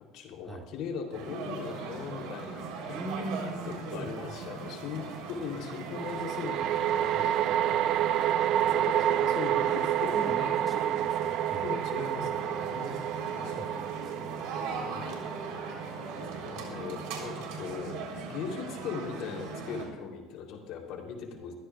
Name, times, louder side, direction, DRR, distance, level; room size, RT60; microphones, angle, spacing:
voice 1, 0.1-3.1 3.6-10.5 11.6-13.0 13.3-13.6 14.7-15.2 16.4-18.0 18.3-21.5, left 6 dB, 70° left, 1 dB, 3.3 m, -39 dB
sound 1, 1.1-19.9, right 4 dB, 75° right, 3.7 m, -39 dB
voice 2, 2.9-4.1 9.7-9.8 10.1-11.7 13.6-13.7 14.0-14.3, right 2 dB, 20° right, 2 dB, 1.8 m, -40 dB
sound 2, 3.0-3.1 5.9-17.3, right 12 dB, 60° right, 0.4 m, -29 dB
22.5 x 15.0 x 2.4 m, 1.1 s
supercardioid pair, 100°, 0 cm